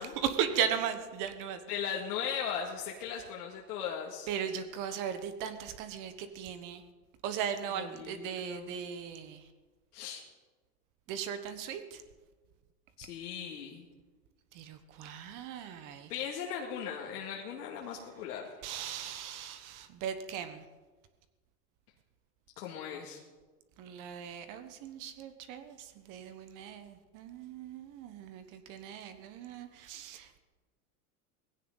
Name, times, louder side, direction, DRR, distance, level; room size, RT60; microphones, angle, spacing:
voice 1, 0.0-1.6 4.3-6.8 7.2-9.5 11.1-12.0 14.5-16.1 18.6-20.6 23.8-30.4, right 8 dB, 45° right, 9 dB, 1.2 m, -37 dB
voice 2, 1.7-4.3 7.8-8.7 9.9-10.2 13.0-13.8 16.1-18.4 22.6-23.2, left 7 dB, 85° left, -2 dB, 2.3 m, -38 dB
19.5 x 16.5 x 4.0 m, 1.3 s
supercardioid pair, 130°, 45 cm